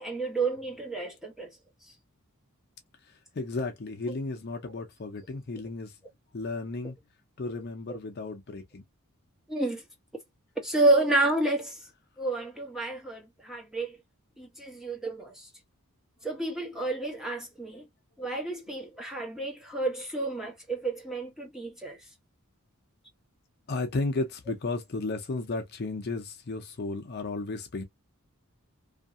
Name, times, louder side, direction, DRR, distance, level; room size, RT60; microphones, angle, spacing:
voice 1, 0.0-1.5 4.7-4.8 9.5-9.8 10.6-11.8 12.2-14.0 14.4-15.5 16.2-17.8 18.2-22.0, right 2 dB, ahead, 0.9 m, -30 dB
voice 2, 3.0-6.0 6.3-7.0 7.4-8.8 23.7-27.8, left 3 dB, 45° left, 0.6 m, -34 dB
2.7 x 2.5 x 2.5 m
head